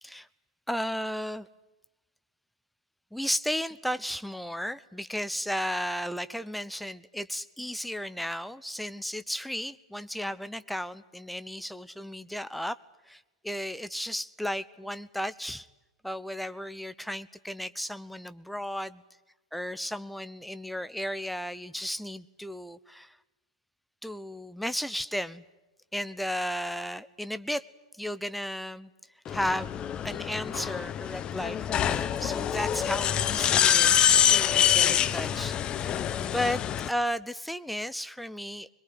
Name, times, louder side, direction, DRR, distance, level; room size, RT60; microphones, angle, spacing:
voice 1, 0.7-1.5 3.1-12.8 13.1-15.7 16.0-19.0 19.5-23.2 24.0-25.4 25.9-27.6 28.0-28.9 29.3-38.7, equal, ahead, 13 dB, 0.9 m, -34 dB
sound 1, 29.3-36.9, left 10 dB, 30° left, 0.9 m, -25 dB
23.0 x 22.0 x 9.5 m, 1.1 s
figure-of-eight pair, 100°, 3 cm